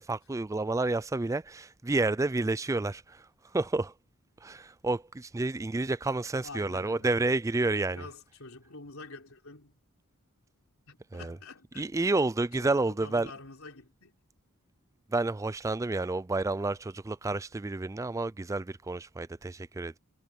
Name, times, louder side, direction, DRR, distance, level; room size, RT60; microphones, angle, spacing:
voice 1, 0.0-3.2 3.5-3.9 4.4-8.1 11.1-11.4 11.7-13.3 15.1-20.0, right 2 dB, 15° right, 0.3 m, -30 dB
voice 2, 6.4-7.1 7.9-9.7 10.9-12.2 12.6-14.2, left 3 dB, 70° left, 4.0 m, -47 dB
head